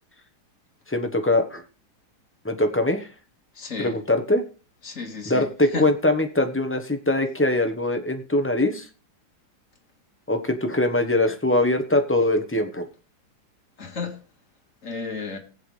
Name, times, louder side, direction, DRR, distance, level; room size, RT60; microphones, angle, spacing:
voice 1, 0.9-1.6 2.4-3.1 3.8-4.4 5.3-8.9 10.3-12.8, left 1 dB, 15° left, 0.5 m, -22 dB
voice 2, 3.5-4.0 4.8-5.9 13.8-14.2 14.8-15.4, left 4 dB, 40° left, 2.3 m, -33 dB
18.0 x 7.9 x 3.3 m
omnidirectional pair, 2.2 m